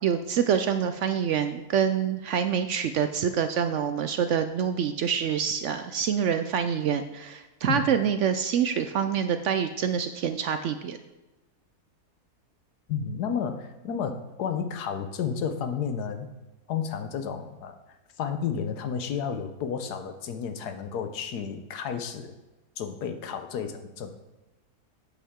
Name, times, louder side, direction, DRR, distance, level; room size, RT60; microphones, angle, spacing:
voice 1, 0.0-11.0, right 8 dB, 70° right, 8 dB, 0.7 m, -26 dB
voice 2, 12.9-16.3 16.7-17.8 18.2-22.3 22.8-24.1, left 7 dB, 85° left, 8 dB, 1.4 m, -31 dB
8.4 x 8.2 x 3.7 m, 1.1 s
omnidirectional pair, 1.7 m